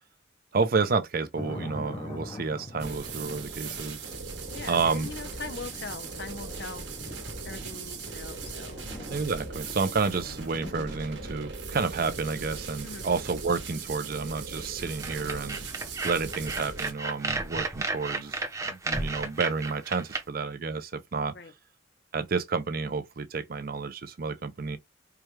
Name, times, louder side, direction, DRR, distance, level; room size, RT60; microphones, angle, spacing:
voice 1, 0.5-4.0 4.7-5.1 9.1-15.6 16.0-21.3 22.1-24.8, right 4 dB, 50° right, 0.5 m, -30 dB
sound 1, 1.4-11.4, left 1 dB, 25° left, 0.5 m, -44 dB
sound 2, 2.8-16.9, right 4 dB, 75° right, 1.3 m, -39 dB
voice 2, 4.5-6.8 7.4-8.8 12.8-13.0 21.3-21.5, left 4 dB, 60° left, 0.7 m, -41 dB
sound 3, 15.0-20.2, right 3 dB, 15° right, 0.7 m, -32 dB
4.7 x 2.3 x 3.1 m
head